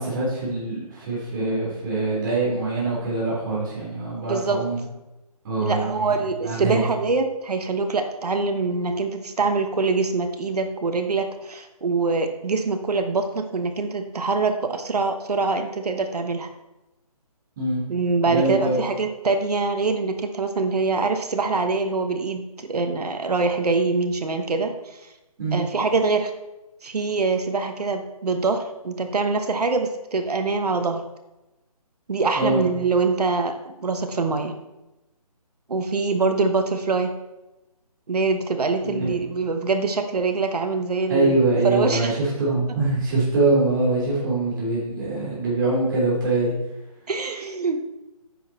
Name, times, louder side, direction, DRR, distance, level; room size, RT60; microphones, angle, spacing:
voice 1, 0.0-4.8 5.4-6.2 6.4-6.8 17.6-17.8 18.3-18.8 25.4-25.6 32.3-32.6 38.8-39.1 41.1-46.5, right 2 dB, 30° right, -6 dB, 3.5 m, -23 dB
voice 2, 4.3-4.6 5.6-16.5 17.9-25.0 25.5-26.3 26.8-31.0 32.1-34.6 35.7-37.1 38.1-41.4 41.6-42.2 47.1-47.9, right 3 dB, 80° right, 6 dB, 1.2 m, -24 dB
10.0 x 6.0 x 4.3 m, 0.97 s
hypercardioid pair, 160°, 20 cm